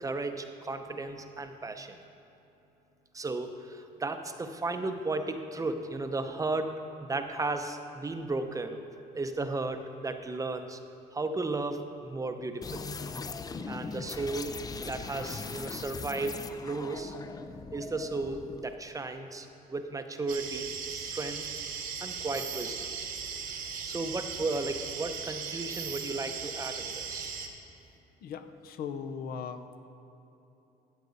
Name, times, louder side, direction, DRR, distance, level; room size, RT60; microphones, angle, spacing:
voice 1, 0.0-2.0 3.1-8.8 9.1-10.8 11.1-13.0 13.7-17.1 17.7-21.5 22.0-22.9 23.8-27.4, right 3 dB, 20° right, 7 dB, 0.7 m, -35 dB
sound 1, 12.6-18.8, left 4 dB, 20° left, 0.4 m, -40 dB
sound 2, 20.3-27.5, right 6 dB, 55° right, 1.2 m, -38 dB
voice 2, 28.2-29.8, left 6 dB, 65° left, 8 dB, 0.7 m, -38 dB
14.5 x 8.1 x 4.0 m, 3.0 s
cardioid pair, 110°, 17 cm